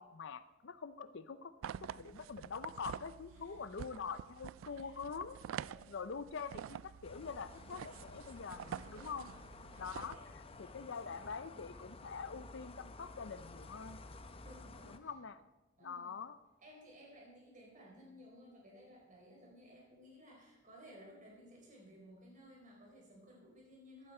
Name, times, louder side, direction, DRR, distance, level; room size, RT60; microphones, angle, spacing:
voice 1, 0.0-1.5 1.8-9.3 9.8-10.2 10.6-14.0 14.9-15.4 15.8-16.4, left 5 dB, 65° left, 13 dB, 0.6 m, -45 dB
voice 2, 0.9-1.5 3.2-4.0 4.6-5.0 5.6-6.2 8.9-9.4 9.7-11.3 14.4-15.1 15.8-16.2 16.6-24.1, equal, 40° right, -2 dB, 4.6 m, -58 dB
sound 1, 1.6-10.2, right 8 dB, 85° right, 0.3 m, -48 dB
sound 2, 7.0-15.0, left 2 dB, 30° left, 0.8 m, -53 dB
14.5 x 12.0 x 4.4 m, 1.1 s
head